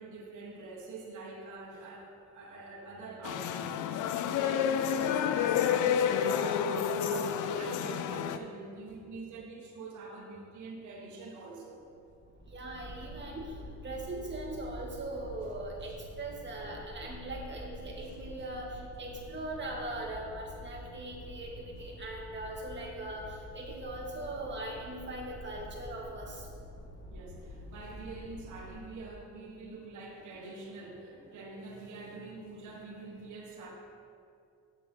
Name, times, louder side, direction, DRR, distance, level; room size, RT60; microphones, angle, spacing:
voice 1, 0.0-3.8 4.1-11.8 18.0-18.1 27.1-33.7, right 3 dB, 75° right, -1 dB, 1.4 m, -45 dB
sound 1, 3.2-8.4, left 8 dB, 85° left, 0.5 m, -29 dB
sound 2, 11.7-29.0, equal, 55° left, 2.1 m, -48 dB
voice 2, 12.5-13.5 13.8-26.5, right 1 dB, 35° right, -3 dB, 2.2 m, -40 dB
8.3 x 7.2 x 4.6 m, 2.4 s
cardioid pair, 90°, 30 cm